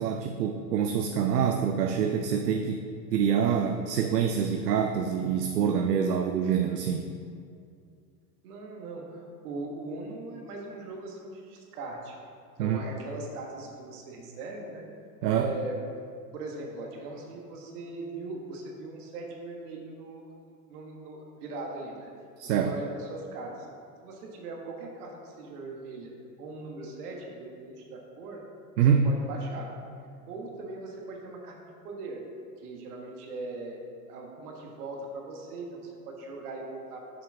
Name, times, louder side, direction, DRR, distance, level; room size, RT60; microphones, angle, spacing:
voice 1, 0.0-2.8 3.1-7.1 12.6-12.8 15.2-15.5 22.4-22.7 28.8-29.1, right 7 dB, 85° right, 5 dB, 0.5 m, -26 dB
voice 2, 8.4-12.2 12.6-14.9 15.3-15.8 16.3-20.3 20.7-22.1 22.4-23.7 24.0-26.1 26.4-28.4 29.0-29.7 30.3-31.6 31.8-32.2 32.6-33.8 34.1-37.2, right 3 dB, 70° right, 0 dB, 1.4 m, -40 dB
6.5 x 5.7 x 3.5 m, 2.4 s
hypercardioid pair, 90°, 47 cm